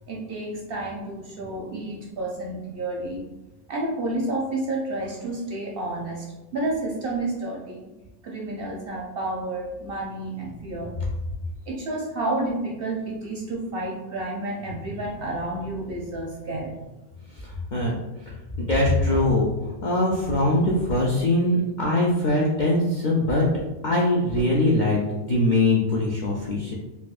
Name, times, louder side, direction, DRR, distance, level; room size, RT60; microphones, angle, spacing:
voice 1, 0.1-3.2 3.7-6.3 6.5-7.9 8.2-10.9 11.7-16.9, right 2 dB, 60° right, -2 dB, 0.6 m, -30 dB
voice 2, 17.7-18.0 18.6-19.5 19.8-23.5 23.8-26.7, left 1 dB, 60° left, -4 dB, 0.4 m, -22 dB
4.1 x 2.3 x 2.4 m, 1.1 s
omnidirectional pair, 1.4 m